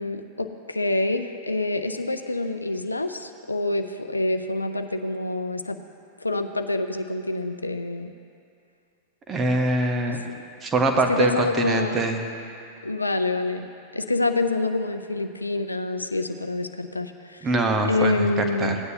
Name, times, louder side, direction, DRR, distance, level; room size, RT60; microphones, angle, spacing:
voice 1, 0.0-5.8 6.2-8.1 10.1-10.2 11.1-12.1 12.8-13.7 13.9-17.5 17.9-18.8, left 2 dB, 85° left, 7 dB, 0.4 m, -26 dB
voice 2, 9.3-10.2 10.6-12.2 17.4-18.8, right 2 dB, 20° right, 4 dB, 1.1 m, -23 dB
16.5 x 9.5 x 2.8 m, 2.4 s
figure-of-eight pair, 90°, 0 cm